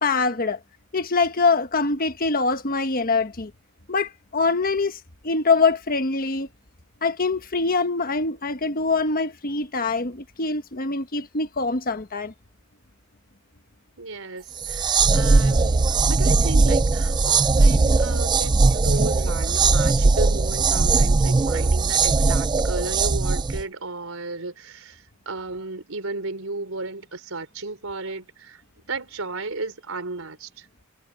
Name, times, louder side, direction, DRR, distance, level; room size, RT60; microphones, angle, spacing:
voice 1, 0.0-0.6 0.9-3.5 3.9-5.0 5.2-6.5 7.0-12.3, left 4 dB, 45° left, 1.4 m, -24 dB
voice 2, 14.0-28.6 28.9-30.7, right 3 dB, 75° right, 4.1 m, -34 dB
sound 1, 14.6-23.6, right 3 dB, 20° right, 0.3 m, -19 dB
head